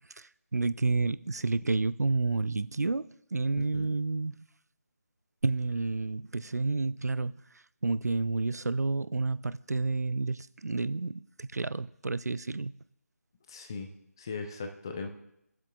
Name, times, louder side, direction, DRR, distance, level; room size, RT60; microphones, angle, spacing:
voice 1, 0.2-4.4 5.4-7.4 7.8-12.7, right 3 dB, 75° right, 0.4 m, -30 dB
voice 2, 13.5-13.9 14.2-15.1, left 4 dB, 15° left, 0.4 m, -38 dB
20.5 x 7.5 x 2.2 m
figure-of-eight pair, 160°, 9 cm